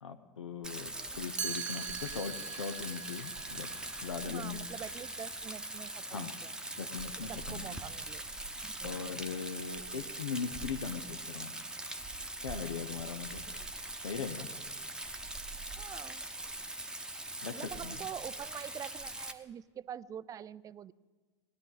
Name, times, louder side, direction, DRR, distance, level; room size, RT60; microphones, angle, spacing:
voice 1, 0.0-3.7 4.0-4.7 6.1-6.3 6.8-7.8 8.8-11.6 12.4-13.4 14.0-14.5 17.4-18.0, left 6 dB, 80° left, 6 dB, 0.7 m, -40 dB
Rain, 0.6-19.3, right 2 dB, 5° right, 1.0 m, -42 dB
voice 2, 1.0-1.3 4.2-6.5 7.3-8.2 8.6-9.0 13.5-13.6 15.8-16.3 17.5-20.9, right 9 dB, 25° right, 19 dB, 0.4 m, -45 dB
Chime, 1.4-7.2, right 8 dB, 85° right, 0.5 m, -44 dB
18.5 x 11.5 x 3.9 m, 1.3 s
figure-of-eight pair, 85°, 15 cm